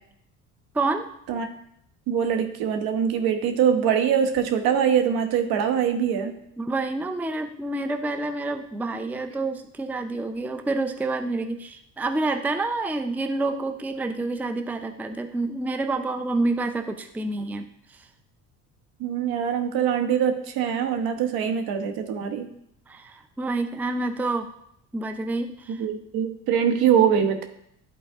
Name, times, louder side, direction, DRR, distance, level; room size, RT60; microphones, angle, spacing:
voice 1, 0.7-1.1 6.6-18.1 22.9-24.5 24.9-25.8, right 2 dB, 5° right, 7 dB, 0.5 m, -28 dB
voice 2, 2.1-6.4 19.0-22.5 25.7-27.4, right 8 dB, 65° right, 7 dB, 1.2 m, -23 dB
11.0 x 4.0 x 3.6 m, 0.73 s
hypercardioid pair, 70°, 40 cm